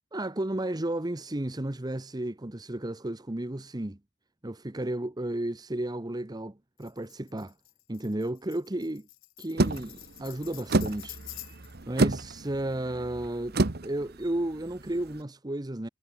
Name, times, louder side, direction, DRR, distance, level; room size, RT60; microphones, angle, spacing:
voice 1, 0.1-4.0 4.4-7.5 7.9-9.1 9.4-11.2 11.9-15.9, right 1 dB, 20° right, 0.9 m, -33 dB
Tambourine, 6.8-11.8, left 16 dB, 75° left, 4.6 m, -48 dB
sound 1, 9.6-15.2, right 2 dB, 50° right, 1.2 m, -30 dB
head